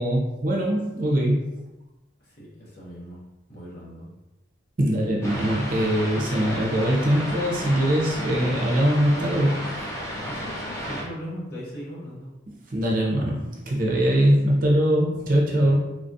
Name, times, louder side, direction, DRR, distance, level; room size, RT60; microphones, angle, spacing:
voice 1, 0.0-1.5 4.8-9.7 12.7-15.8, equal, 45° right, -2 dB, 0.6 m, -22 dB
voice 2, 2.2-3.2 3.5-4.1 10.1-12.3 15.6-15.8, equal, 50° left, -5 dB, 0.9 m, -39 dB
sound 1, 5.2-11.0, equal, 15° left, 0.6 m, -32 dB
3.4 x 2.3 x 2.6 m, 1.0 s
head